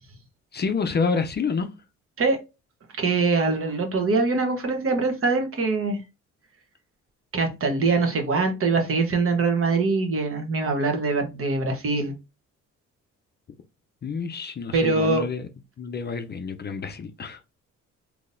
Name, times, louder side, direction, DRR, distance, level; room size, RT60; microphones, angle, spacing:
voice 1, 0.5-1.7 14.0-15.5 15.8-17.4, left 5 dB, 35° left, 0.5 m, -28 dB
voice 2, 3.0-6.0 7.3-12.1 14.7-15.2, right 3 dB, 45° right, 1.1 m, -23 dB
3.7 x 2.8 x 2.6 m
cardioid pair, 90°, 30 cm